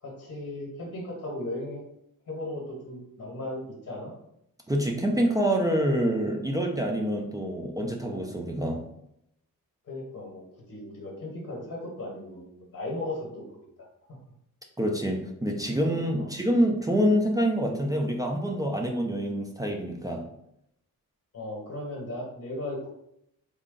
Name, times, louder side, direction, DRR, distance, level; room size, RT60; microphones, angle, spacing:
voice 1, 0.0-1.8 2.3-4.1 9.8-10.4 10.7-13.6 14.1-14.2 16.2-16.3 21.3-22.9, left 1 dB, 45° left, -2 dB, 1.1 m, -36 dB
voice 2, 4.7-8.8 14.8-20.3, equal, 10° right, 1 dB, 0.3 m, -26 dB
3.5 x 2.2 x 3.7 m, 0.77 s
wide cardioid pair, 175°, 34 cm